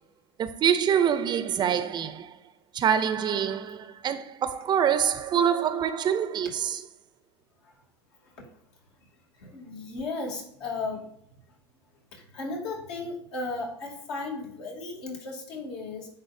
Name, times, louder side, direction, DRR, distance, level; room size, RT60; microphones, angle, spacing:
voice 1, 0.4-2.4 2.7-6.9, right 8 dB, 30° right, 0.6 m, -25 dB
voice 2, 9.4-11.1 12.1-16.1, left 3 dB, 70° left, 2.7 m, -35 dB
10.0 x 4.1 x 2.6 m
hypercardioid pair, 95°, 14 cm